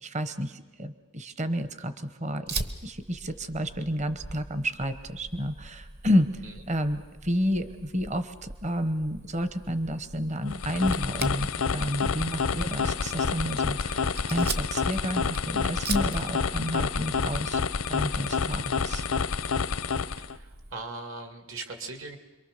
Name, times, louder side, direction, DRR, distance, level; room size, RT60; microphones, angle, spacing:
voice 1, 0.0-6.3 6.7-11.5 11.7-17.6 17.9-19.0, equal, 35° right, 11 dB, 1.0 m, -30 dB
Fire, 2.5-20.7, right 3 dB, 50° right, 1.2 m, -41 dB
sound 1, 10.4-20.4, left 5 dB, 85° left, 0.7 m, -28 dB
voice 2, 20.2-22.2, right 3 dB, 65° right, 6 dB, 2.2 m, -39 dB
27.0 x 23.0 x 6.7 m, 1.2 s
head